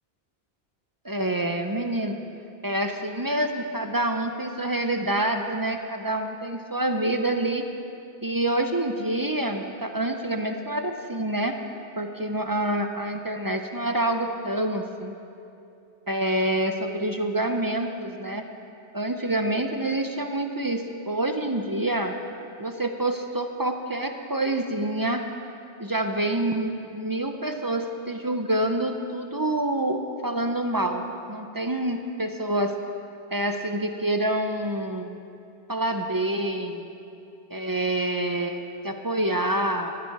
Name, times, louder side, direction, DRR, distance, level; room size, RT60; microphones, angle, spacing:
voice 1, 1.0-2.2 2.6-7.6 8.2-11.6 12.0-15.1 16.1-18.4 18.9-22.2 22.6-25.2 25.8-31.0 31.3-32.7 33.3-35.2 35.7-36.9 37.5-39.9, right 1 dB, 30° right, 5 dB, 0.4 m, -27 dB
16.0 x 11.0 x 4.7 m, 2.7 s
omnidirectional pair, 1.2 m